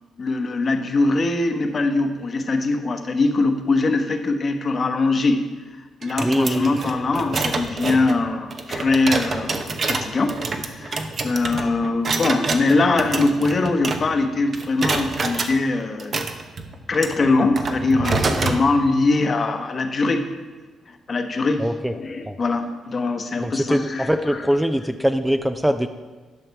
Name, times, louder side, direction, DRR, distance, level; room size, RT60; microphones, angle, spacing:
voice 1, 0.2-5.4 6.0-16.1 16.9-20.3 20.9-21.7 21.9-24.4, left 3 dB, 45° left, 6 dB, 1.0 m, -22 dB
sound 1, 6.0-14.3 14.5-15.5 16.0-18.6, right 3 dB, 50° right, 0.8 m, -27 dB
voice 2, 6.2-6.7 8.9-9.0 9.3-9.4 21.6-21.9 22.3-22.4 23.4-25.9, equal, 5° right, 8 dB, 0.5 m, -22 dB
11.0 x 5.8 x 4.7 m, 1.4 s
cardioid pair, 70°, 0 cm